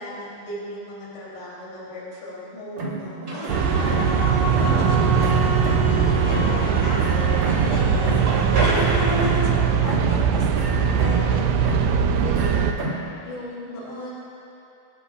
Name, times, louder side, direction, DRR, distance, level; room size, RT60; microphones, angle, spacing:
voice 1, 0.0-3.2 3.8-4.1 4.5-5.1 5.9-6.6 12.2-12.7 13.2-14.1, left 1 dB, 85° left, -7 dB, 5.8 m, -36 dB
sound 1, 2.8-4.3 4.5-6.0 6.3-9.6 9.9-11.4 11.6-13.1, right 2 dB, 55° right, 1.3 m, -30 dB
voice 2, 3.3-4.0 4.6-5.7 6.0-8.2 8.6-11.7, left 1 dB, 55° left, -4 dB, 4.0 m, -35 dB
sound 2, 3.3-9.4, right 1 dB, 30° right, 3.2 m, -28 dB
sound 3, 3.5-12.7, right 7 dB, 85° right, 2.0 m, -21 dB
21.5 x 16.5 x 2.5 m, 2.7 s
omnidirectional pair, 4.9 m